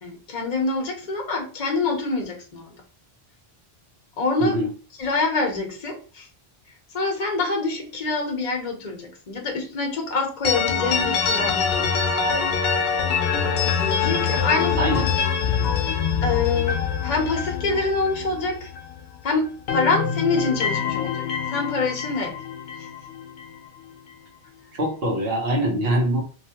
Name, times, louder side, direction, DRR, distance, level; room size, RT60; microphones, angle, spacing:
voice 1, 0.0-2.8 4.2-4.6 5.0-6.3 6.9-12.4 14.0-15.0 16.2-18.7 19.2-21.3 21.5-22.4 22.8-22.9, left 3 dB, 45° left, 1 dB, 0.8 m, -26 dB
sound 1, 10.4-19.2 19.5-23.6, left 6 dB, 75° left, 0.9 m, -25 dB
voice 2, 14.8-15.1 15.5-15.7 24.7-26.2, right 1 dB, 65° right, 1 dB, 1.1 m, -23 dB
3.1 x 2.5 x 2.8 m, 0.38 s
omnidirectional pair, 1.1 m